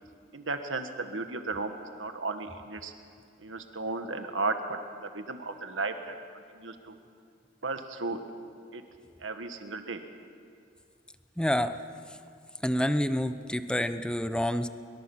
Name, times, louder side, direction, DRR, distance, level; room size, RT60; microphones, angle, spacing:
voice 1, 0.3-2.9 3.4-6.9 7.6-8.3 8.7-8.8 9.2-10.0, right 3 dB, 85° right, 7 dB, 1.7 m, -35 dB
voice 2, 11.4-11.8 12.6-14.7, equal, 5° left, 10 dB, 0.7 m, -28 dB
23.0 x 22.5 x 7.3 m, 2.3 s
head